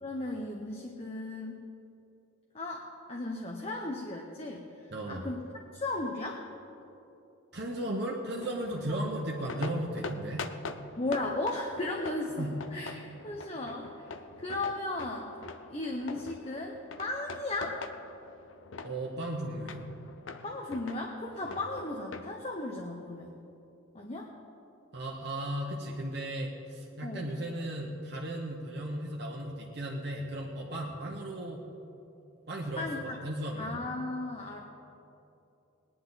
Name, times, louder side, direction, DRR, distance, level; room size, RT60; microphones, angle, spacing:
voice 1, 0.0-1.6 2.5-5.4 5.7-6.4 8.9-9.0 11.0-14.1 14.4-15.4 15.7-17.8 20.4-23.3 23.9-24.3 27.0-27.3 32.8-33.2 33.6-34.6, left 2 dB, 30° left, 0 dB, 0.8 m, -36 dB
voice 2, 4.9-5.3 7.5-10.5 12.4-12.6 18.8-19.8 21.4-21.5 24.9-31.6 32.5-33.8, right 1 dB, 55° right, -2 dB, 1.1 m, -36 dB
sound 1, 8.4-22.3, left 4 dB, 75° left, 0.6 m, -44 dB
19.5 x 10.0 x 4.1 m, 2.8 s
head